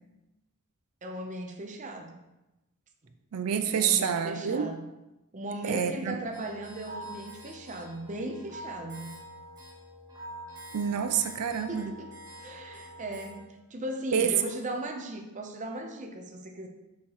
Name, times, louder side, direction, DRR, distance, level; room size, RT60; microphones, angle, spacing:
voice 1, 1.0-2.2 3.0-3.1 3.7-4.8 5.3-9.2 11.7-16.7, right 1 dB, 35° right, 3 dB, 0.7 m, -38 dB
voice 2, 3.3-4.7 5.6-6.2 10.7-11.9 14.1-14.4, right 8 dB, 90° right, 8 dB, 0.4 m, -27 dB
sound 1, 6.3-13.4, right 1 dB, 15° right, 1.5 m, -46 dB
6.2 x 5.9 x 3.0 m, 0.97 s
head